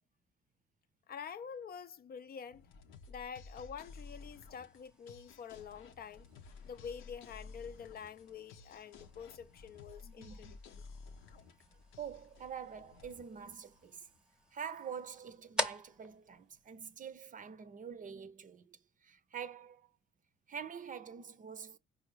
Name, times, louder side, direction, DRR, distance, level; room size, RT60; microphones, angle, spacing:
voice 1, 1.1-2.7 3.1-6.3 6.6-10.8, left 7 dB, 50° left, 0.5 m, -47 dB
sound 1, 2.5-14.2, left 4 dB, 90° left, 0.7 m, -54 dB
sound 2, 3.9-17.5, equal, 5° right, 0.7 m, -47 dB
voice 2, 10.0-10.6 12.0-14.1 14.5-19.9 20.5-21.8, right 7 dB, 40° right, 0.6 m, -46 dB
4.9 x 2.5 x 3.1 m
cardioid pair, 90°, 20 cm